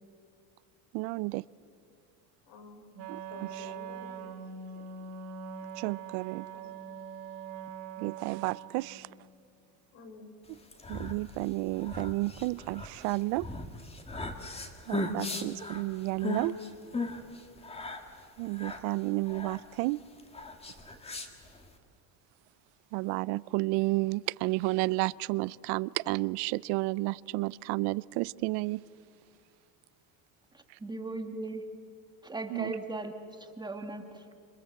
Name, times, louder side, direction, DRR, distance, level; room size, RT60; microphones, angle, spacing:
voice 1, 0.9-1.4 3.1-3.7 5.7-6.5 8.0-9.1 10.9-13.5 14.9-16.5 18.4-20.0 22.9-28.8 32.5-32.8, right 22 dB, 75° right, 21 dB, 0.6 m, -31 dB
voice 2, 2.4-2.8 3.3-4.5 4.7-4.8 6.5-6.8 9.9-10.3, left 3 dB, 75° left, 5 dB, 5.1 m, -50 dB
Wind instrument woodwind instrument, 2.9-9.0, right 7 dB, 55° right, 2.6 m, -43 dB
sound 1, 10.6-21.8, left 3 dB, 15° left, 1.7 m, -38 dB
voice 3, 30.8-31.6 32.2-33.2 33.6-34.2, right 2 dB, 10° right, 5 dB, 1.5 m, -37 dB
28.0 x 25.0 x 7.6 m, 2.3 s
cardioid pair, 155°, 40 cm